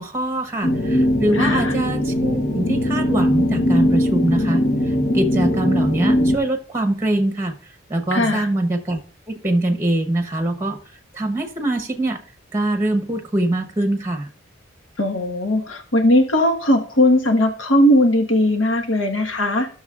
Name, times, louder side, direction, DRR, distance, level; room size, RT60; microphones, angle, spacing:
voice 1, 0.0-9.0 9.3-12.2 12.5-14.3, right 1 dB, 15° right, 6 dB, 1.0 m, -23 dB
sound 1, 0.6-6.4, left 1 dB, 65° left, 1.0 m, -20 dB
voice 2, 1.3-1.7 8.1-8.5 15.0-19.7, left 1 dB, 85° left, 3 dB, 1.4 m, -18 dB
15.5 x 6.3 x 2.5 m, 0.43 s
head